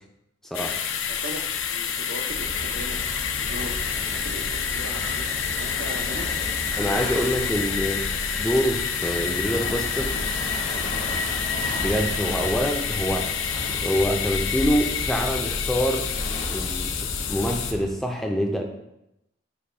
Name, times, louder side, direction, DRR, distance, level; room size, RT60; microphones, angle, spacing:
sound 1, 0.5-17.7, left 7 dB, 80° left, 0.4 m, -28 dB
voice 1, 0.9-3.0 3.4-3.8 4.1-6.4, right 2 dB, 70° right, 4 dB, 0.6 m, -39 dB
sound 2, 2.3-18.0, left 1 dB, 60° left, 0.9 m, -33 dB
voice 2, 6.8-8.1 8.4-10.2 11.8-13.3 13.8-16.1 16.5-16.9 17.3-18.6, equal, ahead, 1 dB, 0.4 m, -25 dB
5.2 x 2.2 x 4.2 m, 0.86 s
head